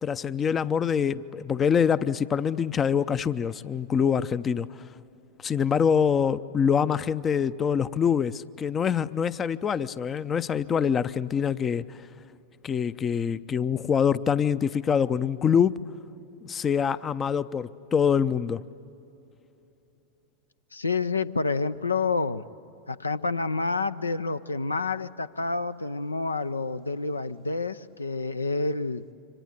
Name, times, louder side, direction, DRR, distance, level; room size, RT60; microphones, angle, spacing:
voice 1, 0.0-4.7 5.4-12.0 12.6-15.8 16.4-18.6, left 7 dB, 20° left, 16 dB, 0.6 m, -25 dB
voice 2, 20.7-22.4 22.9-29.0, left 3 dB, 80° left, 13 dB, 0.6 m, -28 dB
27.5 x 25.5 x 8.2 m, 2.9 s
figure-of-eight pair, 90°, 0 cm